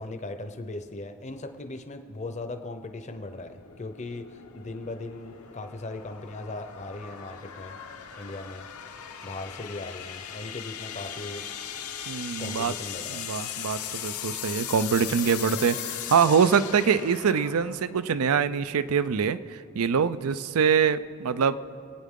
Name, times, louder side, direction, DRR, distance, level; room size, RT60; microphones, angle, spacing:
voice 1, 0.0-7.8 8.2-8.7 9.2-11.5 12.4-13.2, left 2 dB, 30° left, 7 dB, 0.7 m, -38 dB
sound 1, 3.1-18.5, left 9 dB, 75° left, 0.8 m, -38 dB
voice 2, 12.1-12.7 13.2-21.6, right 6 dB, 75° right, 14 dB, 0.5 m, -24 dB
24.5 x 9.2 x 3.7 m, 2.5 s
head